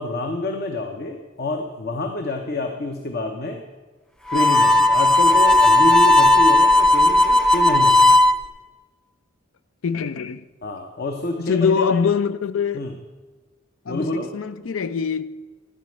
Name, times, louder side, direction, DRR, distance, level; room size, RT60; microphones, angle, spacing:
voice 1, 0.0-3.6 4.3-8.1 10.6-12.0 12.7-13.0 13.8-14.3, left 2 dB, 50° left, 0.8 m, -27 dB
Harmonica, 4.3-8.3, left 2 dB, 5° left, 0.4 m, -15 dB
voice 2, 9.8-10.4 11.4-12.9 13.9-15.3, left 6 dB, 85° left, 0.5 m, -23 dB
12.5 x 5.2 x 7.7 m
head